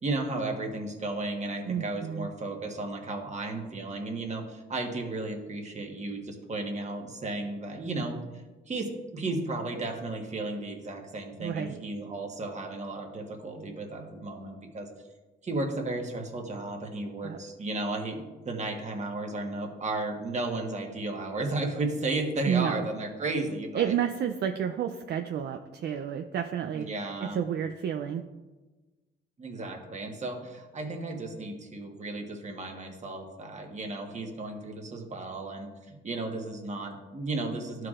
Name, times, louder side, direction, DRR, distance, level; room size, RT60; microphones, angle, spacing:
voice 1, 0.0-8.2 8.7-14.9 15.4-24.0 26.7-27.4 29.4-37.9, right 2 dB, 35° right, 2 dB, 1.3 m, -34 dB
voice 2, 1.7-2.3 11.4-11.8 17.2-17.4 22.5-22.9 23.7-26.9 27.2-28.2, right 9 dB, 60° right, 6 dB, 0.4 m, -30 dB
12.0 x 4.7 x 2.5 m, 1.2 s
cardioid pair, 90°, 20 cm